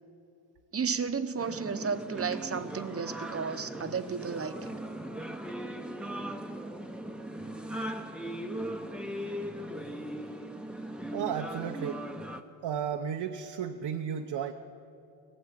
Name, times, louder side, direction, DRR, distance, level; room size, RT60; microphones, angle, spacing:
voice 1, 0.7-4.7, right 6 dB, 30° right, 9 dB, 1.0 m, -33 dB
sound 1, 1.4-12.4, right 1 dB, ahead, 0.9 m, -38 dB
voice 2, 11.1-12.0 12.6-14.5, right 8 dB, 60° right, 4 dB, 0.9 m, -33 dB
19.0 x 8.0 x 8.8 m, 2.7 s
cardioid pair, 85°, 45 cm